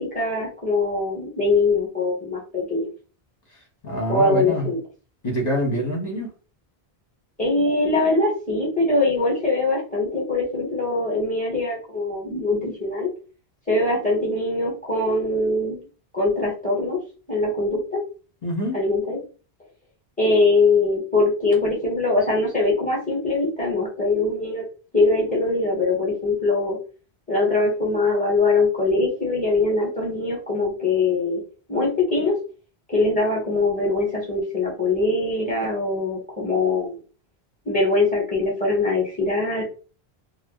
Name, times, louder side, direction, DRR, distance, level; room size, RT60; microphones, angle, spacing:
voice 1, 0.0-2.9 4.1-4.8 7.4-13.1 13.7-15.9 16.1-17.0 17.3-18.0 18.7-19.2 20.2-24.6 24.9-26.8 27.3-31.4 31.7-32.3 32.9-36.9 37.7-39.6, left 3 dB, 10° left, -4 dB, 1.7 m, -22 dB
voice 2, 3.8-4.7 5.2-6.3 18.4-18.8, equal, 40° left, -1 dB, 1.7 m, -25 dB
4.6 x 2.2 x 3.2 m, 0.37 s
omnidirectional pair, 1.1 m